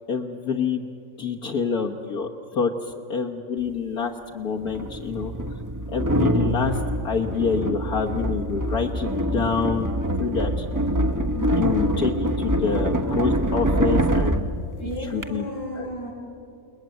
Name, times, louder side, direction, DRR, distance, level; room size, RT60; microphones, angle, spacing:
voice 1, 0.1-0.9 1.2-5.3 5.9-6.8 7.0-9.9 10.2-10.6 11.6-14.5 15.1-15.4 15.8-16.1, left 5 dB, 60° left, 0 dB, 1.7 m, -27 dB
sound 1, 3.6-3.7 4.7-15.3, right 1 dB, 15° right, 0.7 m, -25 dB
voice 2, 11.3-11.6 12.1-12.8 14.8-16.1, equal, 80° left, -6 dB, 6.7 m, -34 dB
29.5 x 20.5 x 9.1 m, 2.6 s
omnidirectional pair, 1.9 m